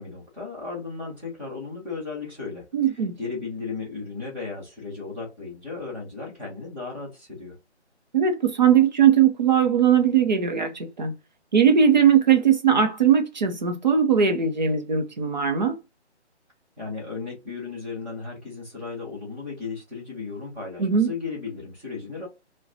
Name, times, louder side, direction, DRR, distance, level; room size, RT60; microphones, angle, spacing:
voice 1, 0.0-2.7 3.2-7.6 16.8-22.3, left 4 dB, 5° right, 0.8 m, -35 dB
voice 2, 2.7-3.2 8.1-11.1 11.5-15.8 20.8-21.1, right 8 dB, 40° right, 0.7 m, -19 dB
4.6 x 2.3 x 2.7 m
figure-of-eight pair, 150°, 35 cm